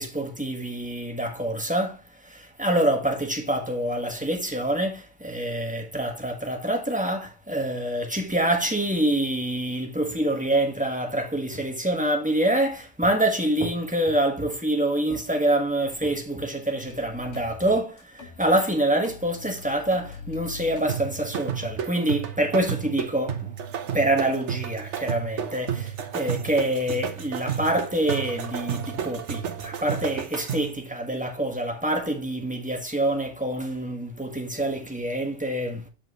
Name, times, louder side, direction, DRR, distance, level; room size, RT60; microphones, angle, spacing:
voice 1, 0.0-23.5 23.9-35.9, right 1 dB, 5° right, 1.3 m, -26 dB
sound 1, 16.9-18.7 19.0-21.8, left 5 dB, 80° left, 1.5 m, -43 dB
sound 2, 20.9-30.8, right 8 dB, 75° right, 1.2 m, -32 dB
7.4 x 6.0 x 2.9 m
omnidirectional pair, 1.2 m